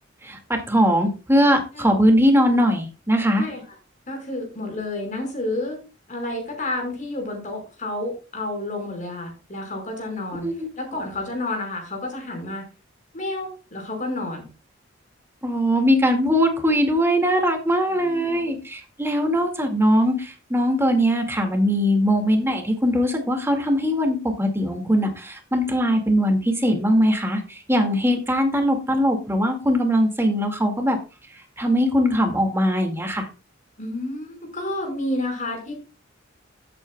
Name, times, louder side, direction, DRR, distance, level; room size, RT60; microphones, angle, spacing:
voice 1, 0.2-3.4 10.4-10.7 15.4-31.0 31.6-33.3, equal, 15° right, 4 dB, 2.1 m, -21 dB
voice 2, 4.1-5.8 6.1-10.5 10.8-12.7 13.1-14.5 18.0-18.4 19.1-19.4 33.8-35.7, left 2 dB, 40° left, 2 dB, 5.1 m, -30 dB
15.0 x 8.7 x 2.3 m, 0.32 s
head